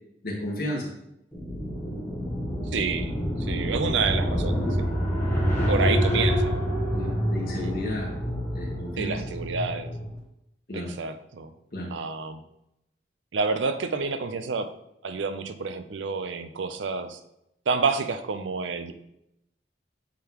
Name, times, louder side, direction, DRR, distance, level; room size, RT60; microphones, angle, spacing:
voice 1, 0.2-0.9 5.6-6.0 6.9-8.1 8.5-9.2 10.7-10.9 11.7-11.9, left 1 dB, 55° left, -3 dB, 1.6 m, -33 dB
sound 1, 1.3-10.1, equal, 15° left, 1.2 m, -27 dB
voice 2, 2.7-3.1 3.4-4.9 5.7-6.5 7.6-7.7 9.0-9.9 10.7-11.5 11.9-12.4 13.3-14.7 15.0-17.2 17.7-18.9, right 4 dB, 85° right, 10 dB, 0.5 m, -29 dB
8.3 x 3.8 x 2.9 m, 0.83 s
head